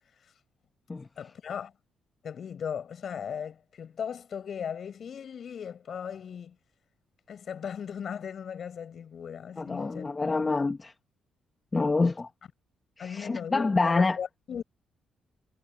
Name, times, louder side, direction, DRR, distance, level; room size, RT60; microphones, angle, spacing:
voice 1, 1.2-1.7 2.2-6.6 7.3-10.1 13.0-14.6, left 7 dB, 55° left, 7.4 m, -37 dB
voice 2, 9.6-10.9 11.7-12.3 13.0-14.2, left 3 dB, 25° left, 1.4 m, -27 dB
cardioid pair, 90°, 0 cm